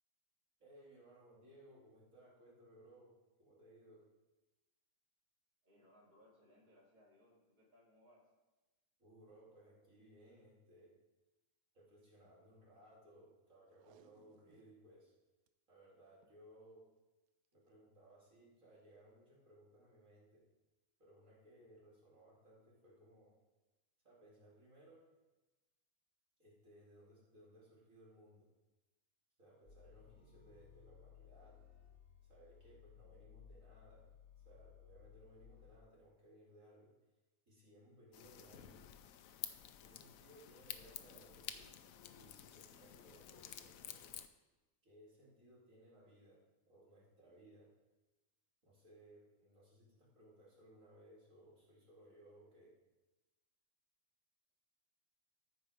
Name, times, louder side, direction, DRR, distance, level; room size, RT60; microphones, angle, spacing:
voice 1, 0.6-3.1 3.4-4.0 9.0-10.9 11.7-15.1 15.7-16.9 17.5-20.4 21.0-23.3 24.0-25.0 26.4-28.5 29.4-31.6 32.2-34.0 34.4-36.9 37.5-38.8 39.8-41.7 42.0-44.1 44.8-46.4 46.7-47.7 48.6-52.7, right 1 dB, 65° right, -6 dB, 3.0 m, -63 dB
voice 2, 5.6-8.2, left 1 dB, 30° right, -6 dB, 2.4 m, -67 dB
Packing tape duct tape, 13.7-14.8 15.2-15.5 16.1-16.4 17.4-17.7 18.3-18.4, right 8 dB, 85° right, 1.1 m, -69 dB
sound 1, 29.7-35.8, left 8 dB, 50° left, 1.9 m, -61 dB
sound 2, 38.1-44.3, left 10 dB, 70° left, 1.0 m, -51 dB
14.0 x 4.8 x 5.0 m, 1.1 s
omnidirectional pair, 1.5 m